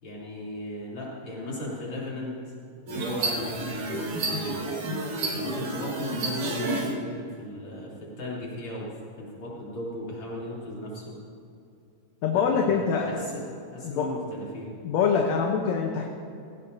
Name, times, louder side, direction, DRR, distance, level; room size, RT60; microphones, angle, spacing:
voice 1, 0.0-2.4 2.9-4.6 5.3-8.9 9.2-11.2 12.3-13.3 13.7-14.7, left 1 dB, 50° left, -6 dB, 4.2 m, -36 dB
sound 1, 2.9-6.9, right 2 dB, 85° right, 3.3 m, -30 dB
voice 2, 12.2-13.1 13.8-14.1 14.8-16.0, left 6 dB, 75° left, 1 dB, 2.2 m, -24 dB
17.5 x 17.0 x 2.8 m, 2.6 s
omnidirectional pair, 3.3 m